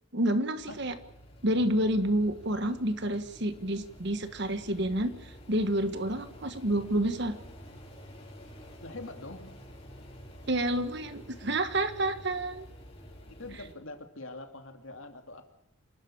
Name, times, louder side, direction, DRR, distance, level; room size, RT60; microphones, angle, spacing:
voice 1, 0.1-0.9 1.4-7.4 10.5-12.7, right 1 dB, 55° right, 10 dB, 1.5 m, -29 dB
sound 1, 0.6-13.7, equal, 30° left, 4.6 m, -49 dB
voice 2, 8.8-9.7 13.3-15.5, left 2 dB, 70° left, 6 dB, 2.7 m, -44 dB
27.0 x 12.5 x 8.7 m, 0.74 s
head